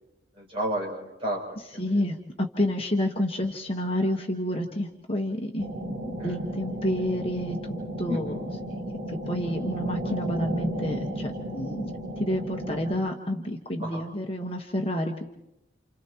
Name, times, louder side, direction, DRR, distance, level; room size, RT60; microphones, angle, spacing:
voice 1, 0.4-1.4 1.7-2.0 6.2-6.4 8.1-8.4 13.8-14.0, equal, 30° right, -2 dB, 7.1 m, -32 dB
voice 2, 1.8-5.7 6.2-8.5 9.1-11.9 12.2-15.3, left 1 dB, 30° left, 2 dB, 1.3 m, -29 dB
sound 1, 5.6-12.9, equal, 70° right, 6.0 m, -34 dB
29.5 x 29.0 x 3.0 m, 0.89 s
head